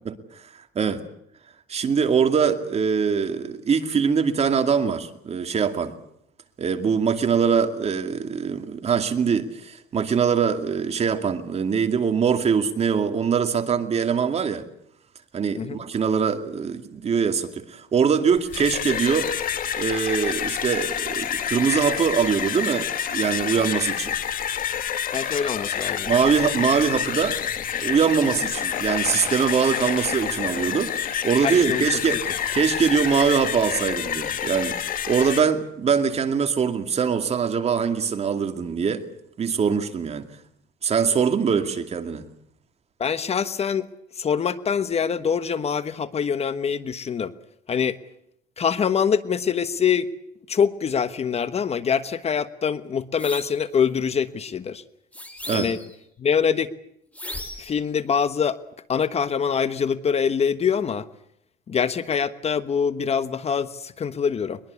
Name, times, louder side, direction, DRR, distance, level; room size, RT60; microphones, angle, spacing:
voice 1, 1.7-5.9 6.6-14.7 15.3-19.3 19.8-24.1 26.1-27.4 27.8-32.2 32.5-34.8 35.1-39.0 39.4-40.3 40.8-42.2 55.5-55.7, right 6 dB, 40° right, 7 dB, 2.4 m, -23 dB
sound 1, 18.4-35.4, left 9 dB, 55° left, 2.0 m, -28 dB
voice 2, 25.1-26.1 31.4-31.8 43.0-43.9 44.2-47.3 47.7-48.0 48.6-50.1 50.5-54.8 55.5-55.8 56.2-56.7 57.6-58.6 58.9-61.1 61.7-64.6, left 7 dB, 40° left, 13 dB, 1.3 m, -24 dB
sound 2, 53.2-53.6 55.1-56.0 57.1-57.8, left 1 dB, 10° left, 4.1 m, -36 dB
22.0 x 22.0 x 8.3 m, 0.73 s
cardioid pair, 110°, 17 cm